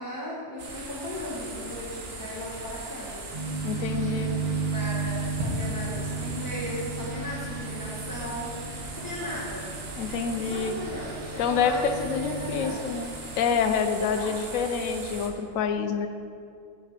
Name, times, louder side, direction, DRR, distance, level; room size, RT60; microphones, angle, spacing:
voice 1, 0.0-3.5 4.0-9.8 10.0-13.0 14.1-15.0, left 1 dB, 15° left, -6 dB, 0.9 m, -37 dB
sound 1, 0.6-15.3, right 3 dB, 80° right, 1.5 m, -40 dB
sound 2, 3.3-12.7, right 3 dB, 30° right, 1.2 m, -34 dB
voice 2, 3.6-4.3 10.0-10.7 11.4-16.1, left 6 dB, 85° left, 8 dB, 1.0 m, -27 dB
7.6 x 5.6 x 5.0 m, 2.4 s
omnidirectional pair, 1.4 m